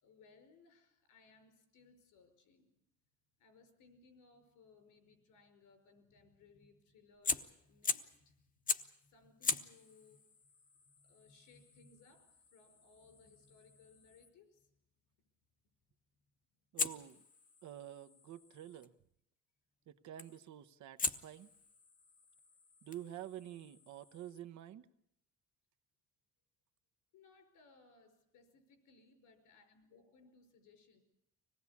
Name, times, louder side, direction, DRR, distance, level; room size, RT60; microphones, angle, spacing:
voice 1, 0.0-2.7 3.4-10.2 10.8-14.7 27.1-31.0, left 4 dB, 80° left, 6 dB, 5.4 m, -65 dB
Fire, 7.1-8.2 8.7-9.0 9.4-14.3 16.8-18.9 20.2-20.5 21.0-24.4, left 4 dB, 25° left, 1.0 m, -42 dB
voice 2, 16.7-17.2 17.6-18.9 19.9-21.5 22.8-24.9, right 11 dB, 65° right, 10 dB, 1.1 m, -49 dB
25.0 x 19.0 x 8.5 m, 0.77 s
cardioid pair, 115°, 31 cm